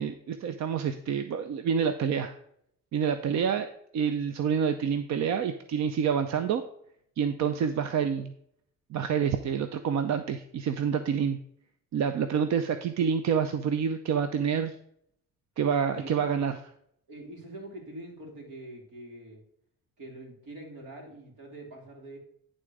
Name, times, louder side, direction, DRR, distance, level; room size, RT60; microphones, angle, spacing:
voice 1, 0.0-2.4 2.9-6.6 7.2-8.3 8.9-11.4 11.9-14.7 15.6-16.5, right 7 dB, 65° right, 9 dB, 0.6 m, -28 dB
voice 2, 15.9-16.3 17.1-19.4 20.0-22.2, right 1 dB, 85° right, 0 dB, 2.9 m, -44 dB
11.0 x 3.8 x 4.8 m, 0.70 s
cardioid pair, 90°, 30 cm